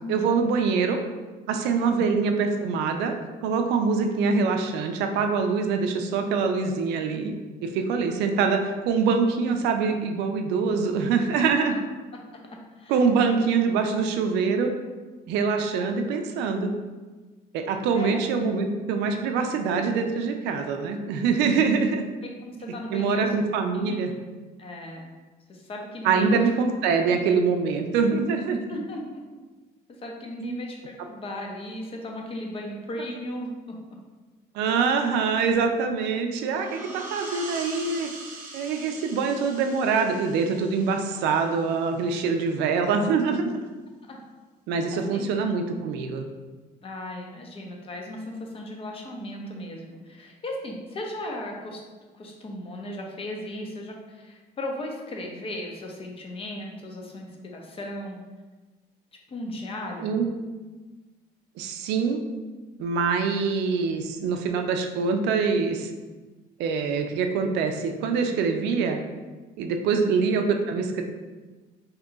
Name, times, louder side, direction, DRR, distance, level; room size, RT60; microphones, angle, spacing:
voice 1, 0.1-1.0 1.5-3.1 3.4-7.3 7.6-11.8 12.9-14.7 15.3-16.7 17.5-22.0 22.9-24.1 26.0-28.6 30.4-30.6 34.5-38.1 38.5-43.5 44.7-46.3 60.0-60.3 61.6-62.2 62.8-65.9 66.6-69.0 69.6-71.0, right 5 dB, 90° right, 5 dB, 0.4 m, -24 dB
voice 2, 22.4-23.3 23.7-24.0 24.6-25.1 25.5-26.4 26.9-27.0 28.7-29.2 29.9-33.8 44.1-44.2 45.1-45.3 46.8-51.8 52.1-58.2 59.3-60.2 70.0-70.1, left 1 dB, 35° left, 1 dB, 0.6 m, -36 dB
sound 1, 36.4-41.8, right 2 dB, 50° right, 0.7 m, -42 dB
2.8 x 2.3 x 3.8 m, 1.3 s
cardioid pair, 110°, 17 cm